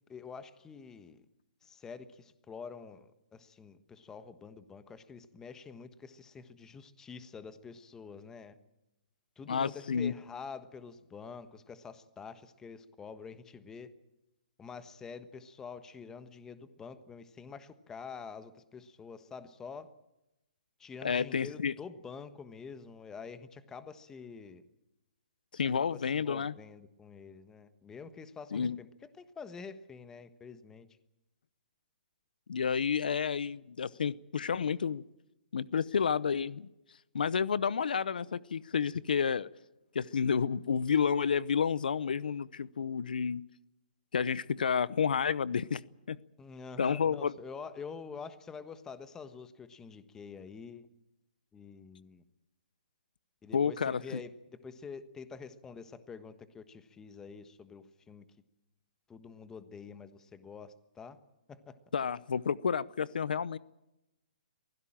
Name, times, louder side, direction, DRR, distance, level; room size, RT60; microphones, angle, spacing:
voice 1, 0.1-1.2 1.6-8.6 9.4-13.9 14.6-19.9 20.8-24.6 25.9-28.9 29.2-30.9 46.4-50.9 51.5-52.2 53.4-58.2 59.1-61.2 61.5-61.8, left 5 dB, 10° left, 12 dB, 1.3 m, -47 dB
voice 2, 9.5-10.1 21.0-21.7 25.5-26.5 28.5-28.8 32.5-35.0 35.5-36.7 37.1-39.5 39.9-43.4 44.1-45.8 46.1-46.2 46.8-47.3 53.5-54.2 61.9-63.6, left 6 dB, 80° left, 20 dB, 0.7 m, -30 dB
23.5 x 16.0 x 8.9 m, 0.93 s
hypercardioid pair, 145°, 5 cm